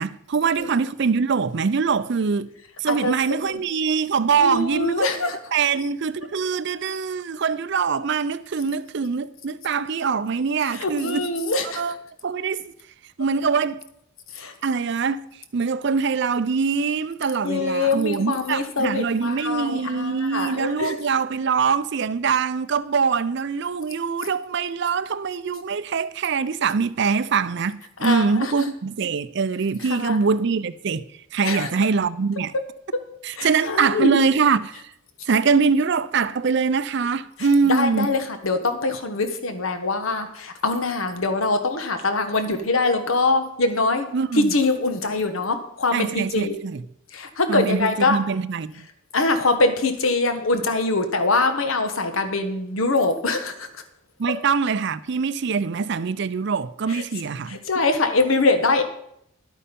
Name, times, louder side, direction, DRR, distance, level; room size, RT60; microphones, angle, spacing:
voice 1, 0.0-2.5 2.8-5.0 5.5-11.3 11.6-11.9 12.2-12.6 13.2-13.8 14.6-15.3 15.5-31.0 31.3-32.5 33.2-34.8 35.3-38.1 44.1-44.5 45.9-46.8 47.5-48.9 54.2-57.6, right 5 dB, 55° right, 0.4 m, -23 dB
voice 2, 4.4-5.4 10.7-11.8 14.3-14.5 17.4-20.9 28.0-28.5 29.9-30.2 31.4-31.7 32.9-33.0 33.3-34.2 37.6-44.1 44.3-46.6 47.1-48.2 49.1-53.8 56.9-57.0 57.5-58.8, left 3 dB, 75° left, 1.3 m, -23 dB
11.5 x 8.6 x 5.3 m
head